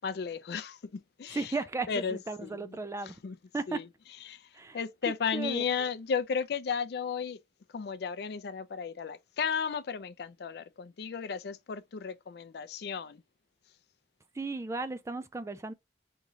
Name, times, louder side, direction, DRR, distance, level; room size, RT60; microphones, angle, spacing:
voice 1, 0.0-1.5 1.9-2.8 3.2-3.4 3.7-3.9 4.3-4.4 4.7-7.4 7.7-13.2, left 6 dB, 65° left, 0.4 m, -34 dB
voice 2, 1.3-3.2 3.5-3.9 4.5-4.8 5.1-5.6 14.4-15.7, right 3 dB, 15° right, 0.3 m, -35 dB
3.7 x 3.0 x 2.6 m
head